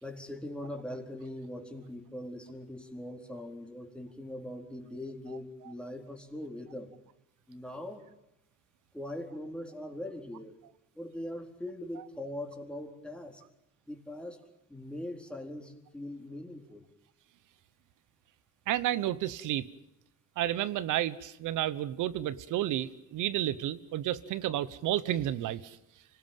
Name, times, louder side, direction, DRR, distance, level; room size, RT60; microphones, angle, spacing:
voice 1, 0.0-6.9 7.5-8.1 8.9-10.5 10.9-13.4 13.9-14.4 14.7-16.9, left 1 dB, 5° left, 2 dB, 4.3 m, -41 dB
voice 2, 18.7-19.7 20.4-25.6, right 13 dB, 85° right, 15 dB, 1.1 m, -31 dB
25.5 x 18.5 x 9.2 m, 0.89 s
cardioid pair, 90°, 30 cm